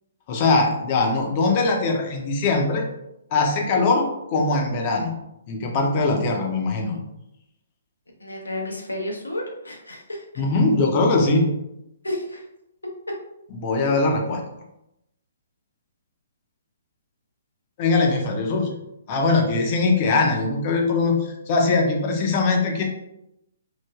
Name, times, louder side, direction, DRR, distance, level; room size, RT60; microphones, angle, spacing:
voice 1, 0.3-2.8 3.3-5.2 5.5-7.0 10.4-11.5 13.5-14.4 17.8-18.8 19.1-22.8, left 3 dB, 35° left, 2 dB, 0.6 m, -21 dB
voice 2, 8.2-10.4 12.0-12.4 13.7-14.0, left 1 dB, 85° left, 0 dB, 0.6 m, -32 dB
3.2 x 2.1 x 2.3 m, 0.85 s
figure-of-eight pair, 130°, 0 cm